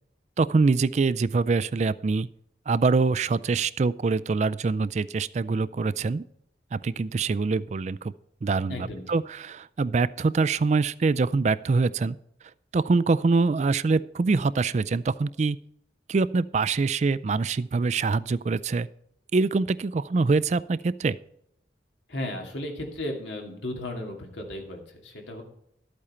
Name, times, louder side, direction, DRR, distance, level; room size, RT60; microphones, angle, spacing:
voice 1, 0.4-2.3 2.7-6.2 6.7-8.1 8.4-12.2 12.7-15.6 16.1-18.9 19.3-21.2, right 4 dB, 40° right, 17 dB, 0.3 m, -24 dB
voice 2, 8.7-9.2 22.1-25.4, left 1 dB, 90° left, 1 dB, 2.6 m, -35 dB
12.5 x 8.6 x 4.4 m, 0.73 s
head